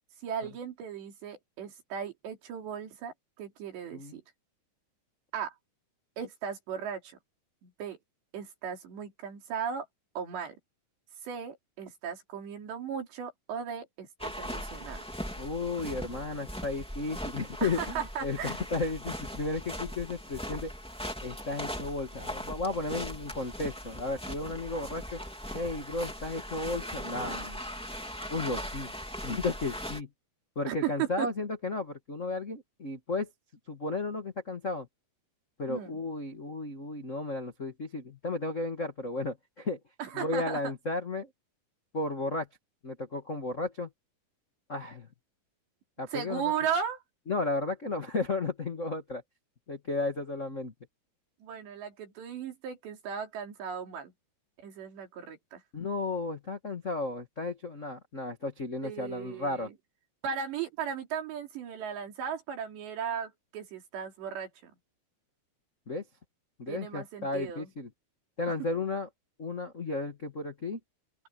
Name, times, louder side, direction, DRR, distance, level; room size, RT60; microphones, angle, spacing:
voice 1, 0.2-4.2 5.3-5.5 6.2-7.2 7.6-8.0 8.3-9.9 10.2-10.6 11.3-15.0 17.6-18.6 30.7-31.3 35.7-36.0 40.0-40.6 46.1-47.0 51.4-54.1 54.6-55.6 58.8-59.7 60.2-64.7 66.7-67.7, right 7 dB, 85° right, 5.6 m, -36 dB
sound 1, 14.2-30.0, equal, ahead, 2.1 m, -39 dB
voice 2, 15.4-20.7 21.2-25.2 25.5-27.6 28.3-28.9 29.2-30.1 30.5-33.3 33.7-34.9 35.6-39.8 40.1-41.3 41.9-42.5 42.8-43.9 44.7-45.1 46.0-46.5 47.3-49.2 49.7-50.7 55.7-59.7 65.9-66.0 66.6-67.9 68.4-69.1 69.4-70.8, left 3 dB, 90° left, 0.6 m, -34 dB
open air
omnidirectional pair, 4.8 m